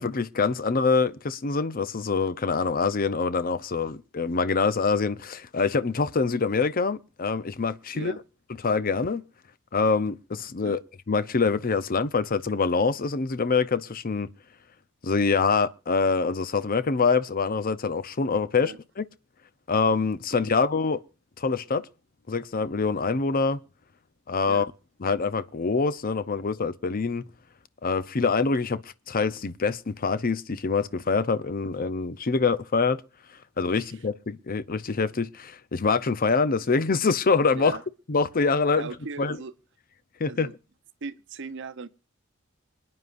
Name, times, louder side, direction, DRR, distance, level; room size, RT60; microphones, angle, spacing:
voice 1, 0.0-8.1 8.6-9.2 9.7-10.8 11.1-14.3 15.0-19.0 19.7-21.0 21.4-21.9 22.3-23.6 24.3-24.7 25.0-27.2 27.8-33.0 33.6-37.8 38.1-38.9 39.2-39.4 40.2-40.5, left 4 dB, 45° left, 0.6 m, -25 dB
voice 2, 38.7-39.5 40.3-40.5 41.0-41.9, right 4 dB, 60° right, 0.9 m, -38 dB
26.5 x 9.6 x 2.5 m
head